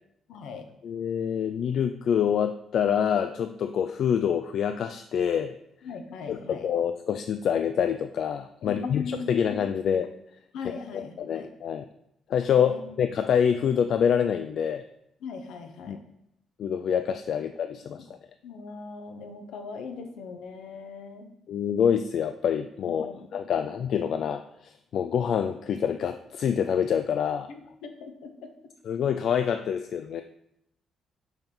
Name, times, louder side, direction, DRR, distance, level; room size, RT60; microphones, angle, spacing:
voice 1, 0.3-0.6 5.8-6.7 8.6-9.6 10.5-11.5 12.6-12.9 15.2-16.0 17.8-18.1 18.4-21.3 22.8-23.3 27.5-28.5, left 5 dB, 85° left, 5 dB, 0.9 m, -40 dB
voice 2, 0.8-5.6 6.3-10.1 10.6-10.7 11.2-11.8 12.3-14.8 15.9-16.0 16.6-18.0 21.5-27.5 28.9-30.2, left 8 dB, 65° left, 9 dB, 0.3 m, -26 dB
5.6 x 4.4 x 5.3 m, 0.78 s
cardioid pair, 90°, 0 cm